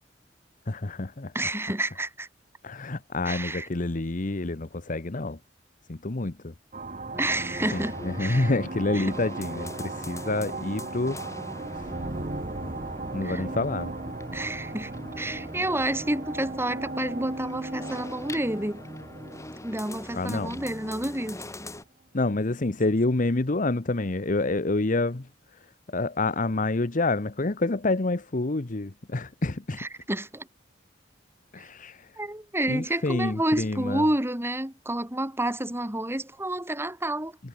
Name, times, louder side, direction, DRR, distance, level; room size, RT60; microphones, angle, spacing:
voice 1, 0.7-1.3 2.6-5.4 5.9-6.5 7.7-11.2 13.1-13.9 20.1-20.6 22.1-25.3 25.9-29.8 31.5-32.0 32.7-34.0, left 2 dB, 45° left, 1.0 m, -28 dB
voice 2, 1.3-2.3 3.2-3.7 7.2-8.5 8.9-9.1 13.2-13.4 14.3-14.9 15.2-18.9 19.6-21.4 29.8-30.5 31.6-31.7 32.2-37.4, right 1 dB, 15° right, 3.4 m, -29 dB
sound 1, 6.7-20.9, right 2 dB, 45° right, 1.8 m, -37 dB
sound 2, 7.1-21.8, left 1 dB, 15° left, 3.6 m, -42 dB
head